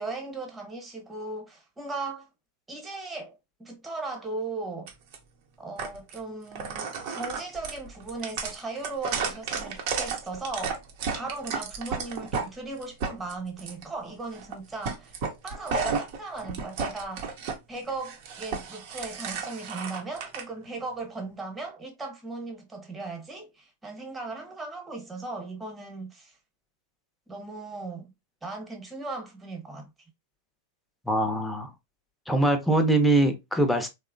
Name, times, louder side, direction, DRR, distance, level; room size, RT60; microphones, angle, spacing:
voice 1, 0.0-2.3 2.7-4.9 5.6-10.8 11.1-15.1 15.4-17.3 17.7-26.4 27.3-28.1 28.4-29.9, right 3 dB, 15° right, 1.0 m, -37 dB
sound 1, 4.9-5.2 5.8-6.2 6.5-12.5 12.8-13.8 14.3-14.6 14.8-17.5 17.9-20.4, right 5 dB, 60° right, 0.7 m, -32 dB
voice 2, 31.1-31.7 32.3-33.9, right 1 dB, 5° left, 0.6 m, -23 dB
3.0 x 2.0 x 2.5 m
hypercardioid pair, 110°, 0 cm